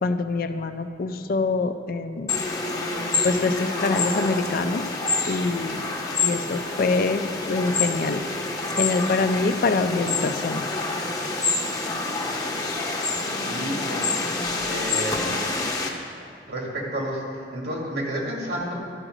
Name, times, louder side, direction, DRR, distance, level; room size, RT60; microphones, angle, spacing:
voice 1, 0.0-2.4 3.2-4.8 5.3-5.8 6.2-8.2 8.8-10.6, left 3 dB, 55° left, 9 dB, 0.5 m, -25 dB
sound 1, 2.3-15.9, left 3 dB, 20° left, 0.9 m, -27 dB
voice 2, 13.4-14.1 14.6-15.3 16.5-18.7, right 1 dB, 80° right, -2 dB, 2.3 m, -30 dB
12.5 x 4.9 x 6.4 m, 2.4 s
head